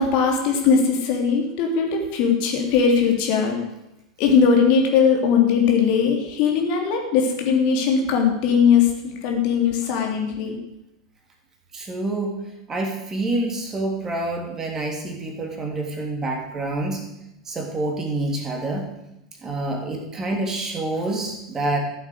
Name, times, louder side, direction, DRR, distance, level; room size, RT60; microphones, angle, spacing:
voice 1, 0.0-3.6 4.2-10.6, left 6 dB, 45° left, 2 dB, 3.1 m, -19 dB
voice 2, 11.7-12.4 12.7-17.0 17.4-18.9 19.4-21.8, right 2 dB, 20° right, 2 dB, 3.1 m, -27 dB
14.5 x 8.2 x 7.9 m, 0.86 s
figure-of-eight pair, 85°, 2 cm